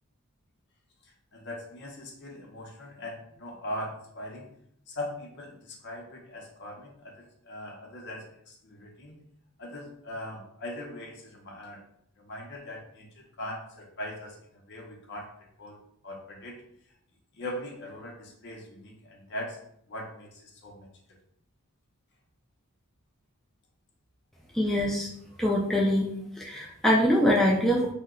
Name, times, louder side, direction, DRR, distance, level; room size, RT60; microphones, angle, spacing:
voice 1, 1.3-4.5 4.9-9.1 9.6-11.8 12.2-14.4 14.7-15.3 15.6-15.8 16.0-16.6 17.4-19.6 19.9-20.9, left 1 dB, 55° left, 0 dB, 0.7 m, -40 dB
voice 2, 24.5-25.1 25.4-26.1 26.4-27.9, equal, ahead, -3 dB, 0.3 m, -23 dB
2.8 x 2.1 x 3.6 m, 0.73 s
head